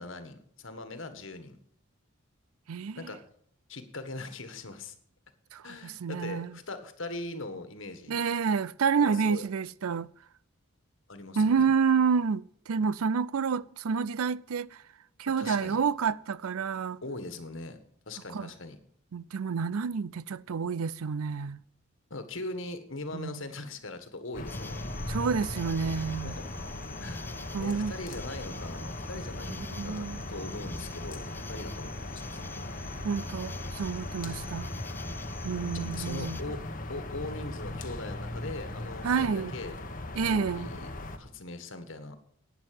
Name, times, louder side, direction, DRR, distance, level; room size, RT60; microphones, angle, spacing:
voice 1, 0.0-1.6 2.9-3.2 3.7-4.9 5.6-8.2 9.0-9.4 11.1-11.7 15.3-15.8 17.0-17.8 18.1-18.8 22.1-24.8 26.2-26.5 27.0-27.3 27.6-32.4 35.7-36.6 36.9-39.8 40.3-40.9 41.2-42.2, left 2 dB, 60° left, 1.7 m, -40 dB
voice 2, 2.7-3.1 5.5-6.5 8.1-10.1 11.4-14.7 15.2-17.0 18.3-18.5 19.1-21.6 23.1-23.4 25.1-26.4 27.5-27.9 29.6-30.2 33.0-34.7 35.4-36.4 39.0-39.6 40.2-40.7, right 6 dB, 85° right, 0.5 m, -29 dB
sound 1, 24.3-41.2, left 1 dB, 40° left, 1.3 m, -39 dB
sound 2, 24.5-36.4, left 2 dB, 10° left, 0.4 m, -44 dB
12.0 x 9.5 x 7.8 m
head